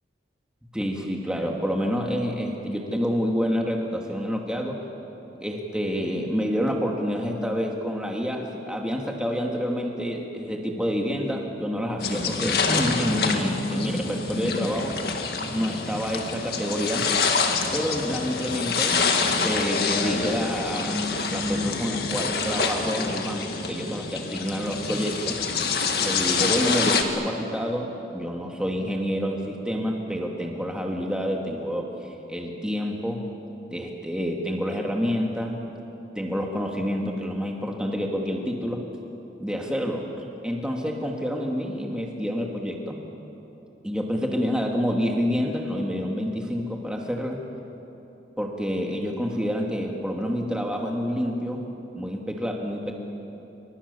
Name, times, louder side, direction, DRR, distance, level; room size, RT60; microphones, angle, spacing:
voice 1, 0.7-4.8 5.4-14.9 15.5-17.1 17.7-25.3 26.0-33.2 33.7-35.6 36.2-38.8 39.4-43.0 43.8-47.4 48.4-51.6 51.9-52.9, equal, 5° right, 0 dB, 2.7 m, -28 dB
sound 1, 12.0-27.0, left 4 dB, 55° left, 2.0 m, -26 dB
29.0 x 25.0 x 7.2 m, 3.0 s
head